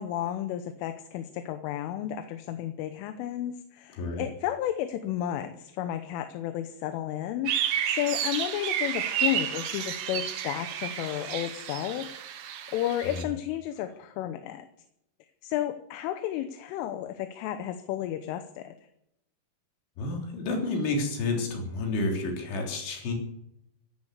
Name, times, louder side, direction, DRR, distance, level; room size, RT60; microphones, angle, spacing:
voice 1, 0.0-12.2 12.7-14.7 15.4-18.8, left 12 dB, 85° left, 8 dB, 3.5 m, -32 dB
sound 1, 7.5-13.2, right 9 dB, 70° right, 3.4 m, -31 dB
voice 2, 20.0-23.1, left 2 dB, 70° left, 2 dB, 5.7 m, -30 dB
16.0 x 11.0 x 8.1 m, 0.80 s
omnidirectional pair, 5.6 m